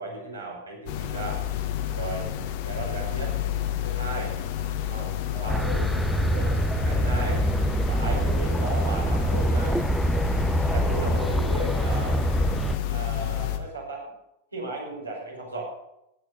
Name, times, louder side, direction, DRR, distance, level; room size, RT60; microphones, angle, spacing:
voice 1, 0.0-1.4 1.9-2.3 2.7-3.3 3.8-4.3 5.4-5.6 6.4-6.6 6.8-7.5 7.9-9.8 10.7-12.3 12.9-14.1 14.5-15.6, right 2 dB, 80° right, -2 dB, 5.4 m, -35 dB
sound 1, 0.9-13.6, left 10 dB, 50° left, 1.4 m, -30 dB
voice 2, 4.8-6.6, right 4 dB, 65° right, -3 dB, 3.3 m, -40 dB
sound 2, 5.5-12.8, right 1 dB, 5° right, 0.5 m, -25 dB
15.5 x 10.0 x 5.4 m, 0.87 s
figure-of-eight pair, 90°, 0 cm